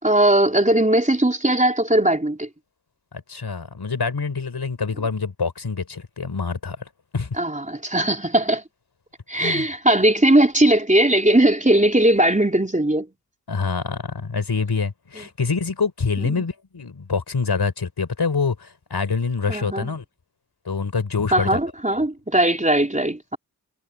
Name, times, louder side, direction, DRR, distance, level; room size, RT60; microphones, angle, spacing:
voice 1, 0.0-2.5 7.4-8.6 9.3-13.1 16.2-16.3 19.5-19.9 21.3-23.4, right 1 dB, 20° right, 3.9 m, -19 dB
voice 2, 3.1-6.8 7.1-7.3 9.3-9.7 13.5-20.0 20.6-21.6, left 4 dB, 85° left, 5.1 m, -26 dB
cardioid pair, 45°, 38 cm